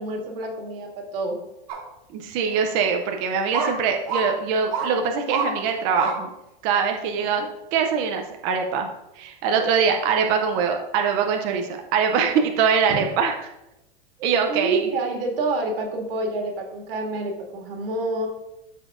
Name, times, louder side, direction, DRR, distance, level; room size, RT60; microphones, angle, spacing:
voice 1, 0.0-1.4 7.2-7.5 9.6-9.7 12.9-13.0 14.5-18.3, right 2 dB, 75° right, 1 dB, 1.9 m, -28 dB
sound 1, 1.7-1.8 2.5-2.6 3.5-3.7 4.1-4.2 4.7-4.9 5.3-5.5 5.9-6.2 6.7-6.8, right 5 dB, 40° right, 1.5 m, -26 dB
voice 2, 2.1-6.3 6.6-7.4 7.7-8.9 9.2-13.3 14.2-14.9, right 6 dB, 20° right, 4 dB, 0.3 m, -23 dB
12.5 x 4.3 x 2.4 m, 0.91 s
supercardioid pair, 160°, 29 cm